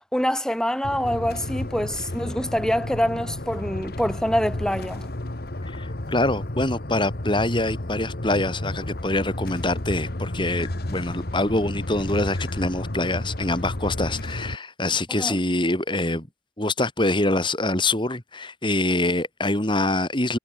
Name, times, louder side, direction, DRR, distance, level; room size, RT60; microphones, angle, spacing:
voice 1, 0.1-5.1 15.2-15.4, equal, 5° left, 4.3 m, -25 dB
sound 1, 0.8-14.6, left 1 dB, 55° left, 1.6 m, -32 dB
voice 2, 5.6-16.3 16.6-20.4, left 2 dB, 25° left, 3.4 m, -25 dB
head